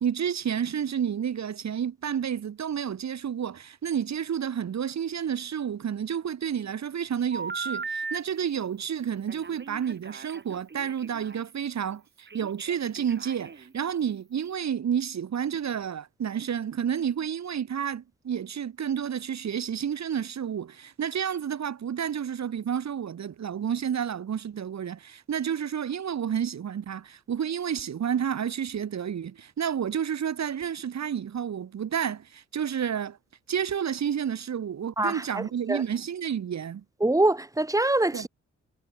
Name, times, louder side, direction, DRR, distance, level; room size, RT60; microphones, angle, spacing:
voice 1, 0.0-33.2 33.5-36.8 38.1-38.3, right 8 dB, 70° right, 1.6 m, -30 dB
Telephone, 7.3-8.2 9.3-11.4 12.3-13.7, right 4 dB, 40° right, 2.8 m, -38 dB
voice 2, 35.0-35.8 37.0-38.3, right 2 dB, 10° right, 2.1 m, -24 dB
cardioid pair, 80°, 29 cm